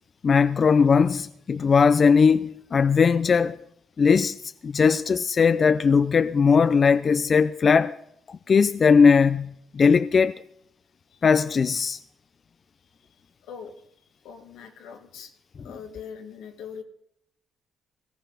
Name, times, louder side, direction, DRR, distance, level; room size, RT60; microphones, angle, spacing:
voice 1, 0.2-3.6 4.0-4.4 4.6-7.9 8.3-10.3 11.2-12.0, left 5 dB, 45° left, 0.5 m, -19 dB
voice 2, 13.4-13.8 14.2-15.3 15.6-16.8, left 7 dB, 90° left, 2.0 m, -41 dB
18.0 x 14.5 x 4.0 m
cardioid pair, 90°, 0 cm